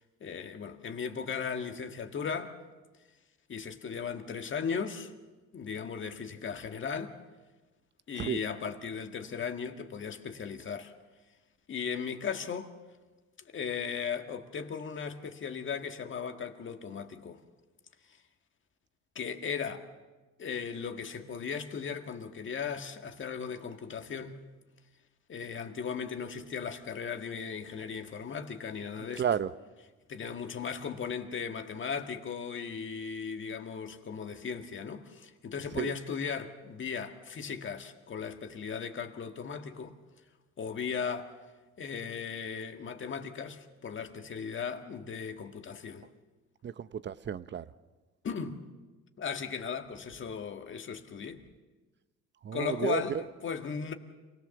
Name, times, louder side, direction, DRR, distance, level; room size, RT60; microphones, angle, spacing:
voice 1, 0.2-2.6 3.5-5.1 5.5-7.2 8.1-10.9 11.7-12.7 13.5-17.4 19.2-19.9 20.4-24.4 25.3-29.2 30.1-40.0 40.6-41.3 41.8-46.1 48.2-48.6 49.2-51.4 52.5-53.9, left 6 dB, 40° left, 1.8 m, -37 dB
voice 2, 29.2-29.5 35.8-35.9 46.6-47.6 52.4-53.0, right 8 dB, 40° right, 0.8 m, -32 dB
27.5 x 17.5 x 7.1 m
cardioid pair, 100°, 29 cm